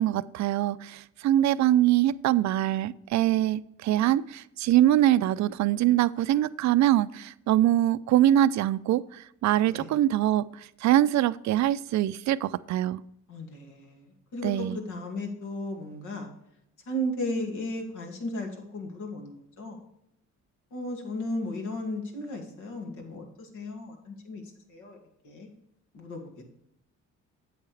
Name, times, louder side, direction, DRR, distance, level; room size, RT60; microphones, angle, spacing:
voice 1, 0.0-13.0 14.4-14.8, right 13 dB, 65° right, 17 dB, 0.5 m, -24 dB
voice 2, 13.3-16.3 16.9-19.8 20.7-24.4 24.7-25.0 25.2-25.5 25.9-26.5, left 1 dB, 80° left, 2 dB, 2.2 m, -35 dB
8.4 x 7.9 x 3.2 m, 0.79 s
cardioid pair, 90°, 30 cm